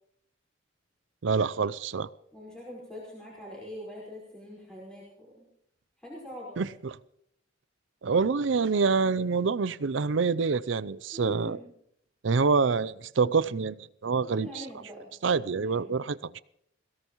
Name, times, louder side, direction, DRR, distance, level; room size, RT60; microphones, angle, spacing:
voice 1, 1.2-2.1 6.6-7.0 8.0-11.6 12.2-14.6 15.2-16.4, right 4 dB, 65° right, 0.5 m, -26 dB
voice 2, 2.3-5.5 6.0-6.8 11.1-11.7 14.4-15.1 15.5-15.9, left 1 dB, 5° left, 4.8 m, -43 dB
22.0 x 17.0 x 3.1 m
head